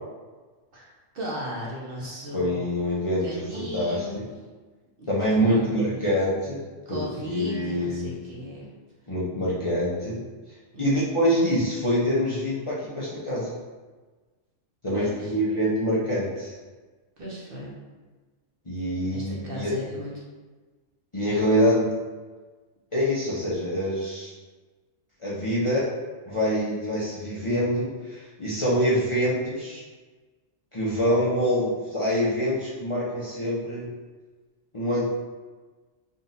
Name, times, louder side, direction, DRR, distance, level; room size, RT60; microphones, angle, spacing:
voice 1, 0.7-2.8 3.2-4.3 5.0-6.1 6.9-8.7 10.7-11.3 14.9-15.3 17.2-17.8 19.1-20.1, equal, 50° right, -5 dB, 0.9 m, -36 dB
voice 2, 2.3-3.2 3.5-4.2 5.1-6.6 6.9-8.1 9.1-10.2 10.8-13.5 14.8-16.5 18.7-19.7 21.1-21.9 22.9-24.3 25.2-25.9 26.2-29.8 30.7-33.9 34.7-35.1, equal, 30° left, -8 dB, 0.6 m, -25 dB
3.8 x 2.4 x 4.0 m, 1.3 s
omnidirectional pair, 1.3 m